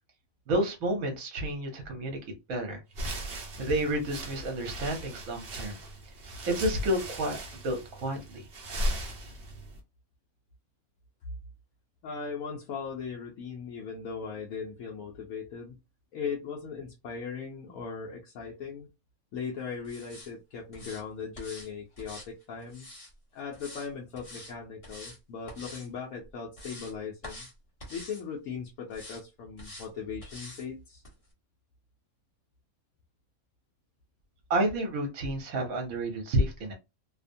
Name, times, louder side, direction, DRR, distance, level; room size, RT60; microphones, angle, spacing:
voice 1, 0.5-2.2 2.5-2.8 3.6-5.8 6.5-7.4 7.6-8.5 34.5-36.7, right 1 dB, 75° right, 4 dB, 1.3 m, -30 dB
sound 1, 2.9-9.8, right 1 dB, 50° right, 0.9 m, -38 dB
voice 2, 12.0-15.8 16.1-18.9 19.3-22.9 23.3-27.5 27.9-31.0, left 6 dB, 70° left, -2 dB, 1.0 m, -38 dB
sound 2, 19.8-20.3 20.7-21.0 21.3-21.7 22.0-23.1 23.5-23.9 24.1-24.5 24.8-25.2 25.5-25.9 26.3-26.9 27.2-27.5 27.8-28.2 28.9-29.2 29.6-29.9 30.2-30.6 31.0-31.1, left 1 dB, 25° left, 1.0 m, -46 dB
2.8 x 2.1 x 2.5 m, 0.25 s
omnidirectional pair, 1.5 m